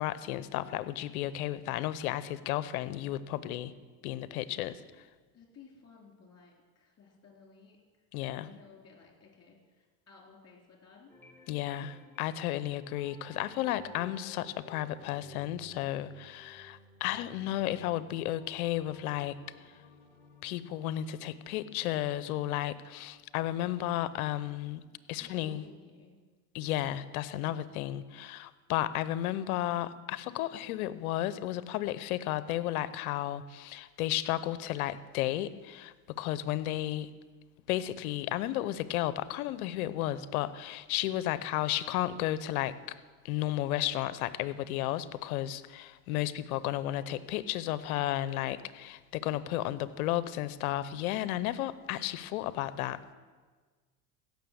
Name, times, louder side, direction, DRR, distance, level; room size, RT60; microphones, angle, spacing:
voice 1, 0.0-3.7 4.0-4.8 8.1-8.5 11.5-19.4 20.4-24.8 25.1-25.6 26.5-37.1 37.7-42.8 43.2-53.0, left 13 dB, 80° left, 16 dB, 0.8 m, -33 dB
voice 2, 5.3-7.8 8.3-11.1 11.5-11.9 25.2-26.1 49.6-49.9, left 5 dB, 35° left, 0 dB, 4.1 m, -57 dB
sound 1, 11.1-25.0, equal, 5° left, 3.5 m, -56 dB
16.0 x 6.5 x 6.9 m, 1.4 s
hypercardioid pair, 80°, 43 cm